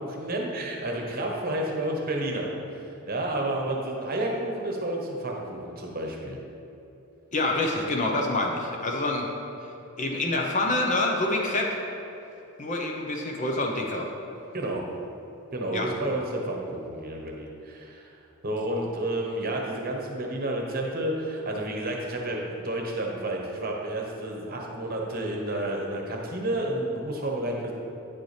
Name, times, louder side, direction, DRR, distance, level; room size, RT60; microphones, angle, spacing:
voice 1, 0.0-2.5 3.1-6.4 14.5-14.8 15.5-18.1 18.4-27.7, right 1 dB, 40° right, 0 dB, 1.0 m, -30 dB
voice 2, 7.3-9.3 10.0-11.8 12.6-14.1 15.7-15.9, left 2 dB, 35° left, 1 dB, 0.7 m, -26 dB
9.3 x 6.8 x 3.3 m, 2.8 s
head